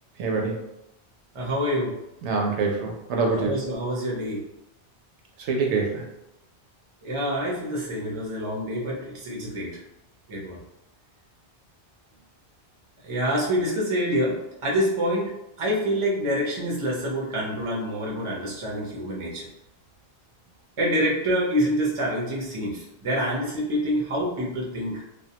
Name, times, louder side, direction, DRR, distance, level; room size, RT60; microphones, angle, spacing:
voice 1, 0.2-0.6 2.2-3.7 5.4-6.1, right 4 dB, 85° right, 0 dB, 0.9 m, -25 dB
voice 2, 1.3-2.0 3.4-4.4 7.0-9.8 10.3-10.6 13.0-19.5 20.8-25.0, equal, 35° right, -4 dB, 0.6 m, -27 dB
2.3 x 2.1 x 2.7 m, 0.89 s
omnidirectional pair, 1.2 m